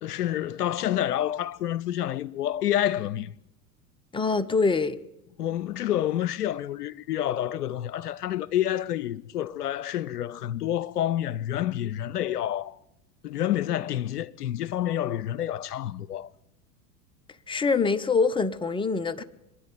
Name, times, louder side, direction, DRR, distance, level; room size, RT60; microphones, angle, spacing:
voice 1, 0.0-3.3 5.4-12.8 13.2-16.3, left 12 dB, 70° left, 0.7 m, -28 dB
voice 2, 4.1-5.0 17.5-19.2, left 4 dB, 10° left, 1.0 m, -24 dB
25.0 x 10.5 x 9.9 m
figure-of-eight pair, 80°, 48 cm